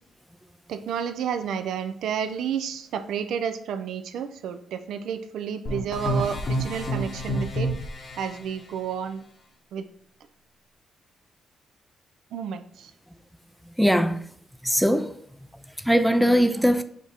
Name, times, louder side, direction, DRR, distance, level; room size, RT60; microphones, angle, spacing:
voice 1, 0.7-7.7 8.2-9.2 9.7-9.9 12.3-12.9, right 7 dB, 80° right, 0.4 m, -31 dB
sound 1, 5.6-8.4, equal, 45° left, 1.0 m, -28 dB
voice 2, 13.6-14.3 14.6-15.2 15.5-16.8, equal, ahead, 0.3 m, -21 dB
5.0 x 2.4 x 4.1 m
cardioid pair, 75°, 0 cm